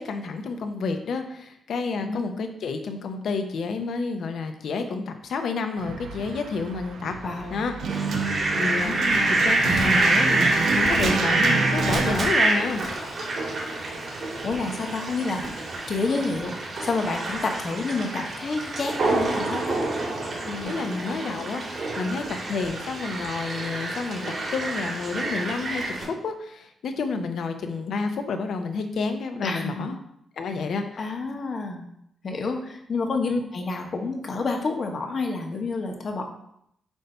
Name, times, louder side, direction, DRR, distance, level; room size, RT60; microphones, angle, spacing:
voice 1, 0.0-7.2 7.5-7.7 8.6-9.0 9.4-12.8 19.1-19.2 20.6-24.2 24.5-30.0 30.4-31.0 33.3-33.4, left 4 dB, 65° left, 6 dB, 0.8 m, -30 dB
sound 1, 5.8-12.2, right 5 dB, 80° right, 0.9 m, -29 dB
voice 2, 7.2-7.6 8.8-9.4 14.4-16.5 16.8-19.8 20.5-20.8 29.4-29.8 31.0-31.8 32.2-36.2, left 3 dB, 45° left, 3 dB, 1.1 m, -29 dB
Fowl, 7.9-26.0, right 2 dB, 45° right, 2.4 m, -27 dB
8.0 x 2.8 x 5.5 m, 0.74 s
cardioid pair, 130°, 0 cm